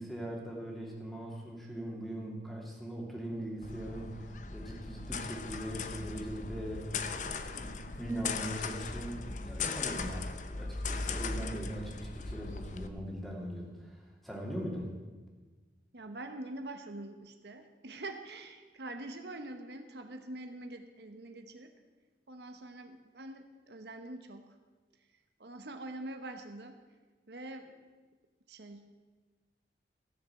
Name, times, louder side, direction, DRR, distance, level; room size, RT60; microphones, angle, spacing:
voice 1, 0.0-15.0, equal, ahead, -2 dB, 2.3 m, -40 dB
sound 1, 3.6-12.9, left 4 dB, 45° left, 0.7 m, -38 dB
voice 2, 15.9-21.7 22.3-24.4 25.4-26.8 27.3-27.7 28.5-28.9, right 2 dB, 70° right, 6 dB, 1.0 m, -44 dB
14.5 x 6.9 x 7.6 m, 1.3 s
head